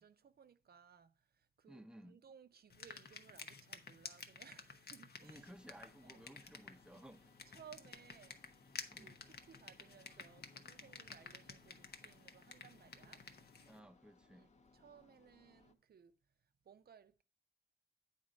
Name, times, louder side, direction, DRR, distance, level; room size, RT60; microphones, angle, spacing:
voice 1, 0.0-5.5 6.0-6.3 6.9-7.0 7.5-8.4 8.9-13.2 14.3-16.2 16.6-17.2, right 7 dB, 75° right, 0.4 m, -62 dB
voice 2, 1.7-2.2 5.2-7.3 8.9-9.1 13.7-14.5, right 1 dB, 5° right, 0.6 m, -57 dB
sound 1, 2.7-13.8, left 5 dB, 80° left, 0.7 m, -53 dB
sound 2, 5.2-15.7, left 3 dB, 45° left, 0.6 m, -69 dB
8.7 x 4.0 x 5.0 m
wide cardioid pair, 95°, 16 cm